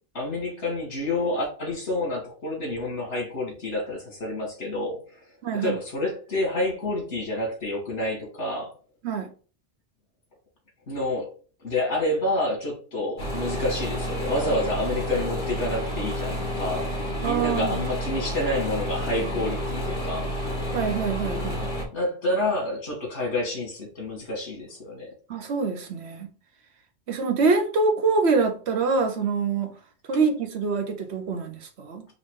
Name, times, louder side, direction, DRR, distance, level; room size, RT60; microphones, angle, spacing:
voice 1, 0.1-5.2 5.5-8.7 10.9-11.3 11.6-16.9 17.2-20.3 21.9-25.1, left 1 dB, 75° left, 2.2 m, -28 dB
voice 2, 5.4-5.8 9.0-9.3 17.2-17.7 20.7-21.7 25.3-26.3 27.1-29.7 30.1-32.0, right 4 dB, 70° right, 1.1 m, -25 dB
sound 1, 13.2-21.8, equal, 50° left, 1.9 m, -30 dB
4.8 x 2.8 x 3.7 m
omnidirectional pair, 1.2 m